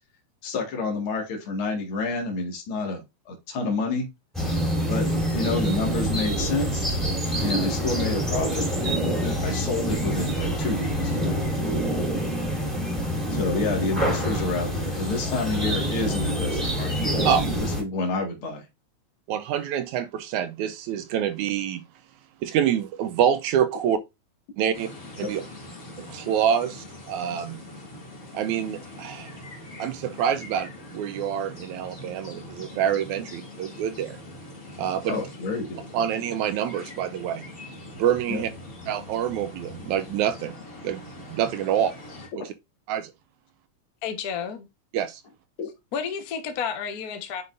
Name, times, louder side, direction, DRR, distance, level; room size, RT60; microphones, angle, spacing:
voice 1, 0.4-4.1 4.9-7.0 7.4-12.1 13.3-17.3 17.6-18.7 25.2-25.3 35.1-35.9 38.3-38.4 42.4-42.5 45.6-45.7, left 3 dB, 45° left, 2.5 m, -29 dB
sound 1, 4.3-17.8, equal, ahead, 3.3 m, -26 dB
voice 2, 19.3-21.8 22.4-24.0 24.6-24.9 25.2-25.4 26.0-27.6 28.3-29.3 29.8-34.2 34.8-35.2 35.9-37.5 38.0-38.5 38.9-40.6 40.8-41.9 42.4-42.5 42.9-43.1 44.9-45.2, right 9 dB, 80° right, 1.8 m, -26 dB
sound 2, 24.7-42.3, left 1 dB, 30° left, 2.7 m, -42 dB
voice 3, 44.0-44.7 45.9-47.4, left 7 dB, 70° left, 0.8 m, -31 dB
9.4 x 5.4 x 2.6 m
omnidirectional pair, 3.7 m